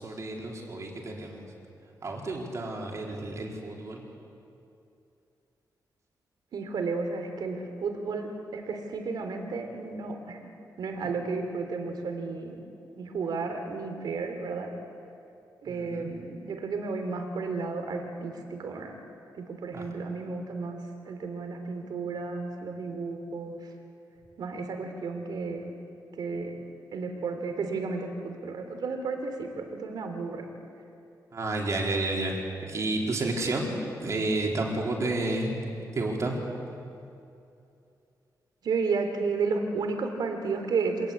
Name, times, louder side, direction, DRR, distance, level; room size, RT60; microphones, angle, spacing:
voice 1, 0.0-1.4 2.0-4.0 15.7-16.1 19.7-19.9 31.3-35.6 35.9-36.4, right 2 dB, 45° right, 0 dB, 4.1 m, -31 dB
voice 2, 6.5-10.4 10.8-12.6 12.9-14.7 15.6-19.0 19.3-20.8 21.0-23.6 24.4-25.7 26.2-26.5 26.9-30.5 38.6-41.1, right 4 dB, 75° right, 5 dB, 3.2 m, -32 dB
25.5 x 19.5 x 8.5 m, 2.6 s
wide cardioid pair, 145°, 7 cm